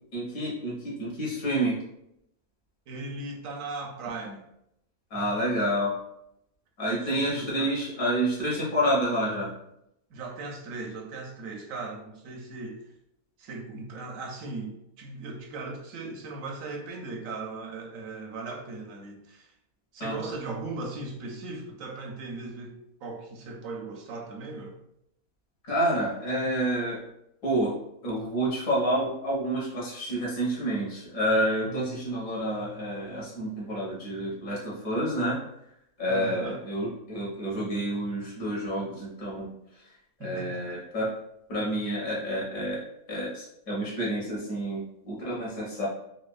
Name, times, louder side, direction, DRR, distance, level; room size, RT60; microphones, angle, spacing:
voice 1, 0.1-1.8 5.1-5.9 6.8-9.5 20.0-20.3 25.6-27.0 27.4-27.8 28.0-35.4 36.0-39.5 40.2-41.1 41.5-42.8 43.1-45.9, right 1 dB, 70° left, -5 dB, 1.8 m, -29 dB
voice 2, 2.9-4.4 7.0-7.7 10.1-12.9 13.4-19.5 19.9-24.8 31.6-31.9 36.1-36.6 40.2-40.8, right 3 dB, 70° right, 2 dB, 0.9 m, -38 dB
4.1 x 2.7 x 2.3 m, 0.78 s
omnidirectional pair, 1.6 m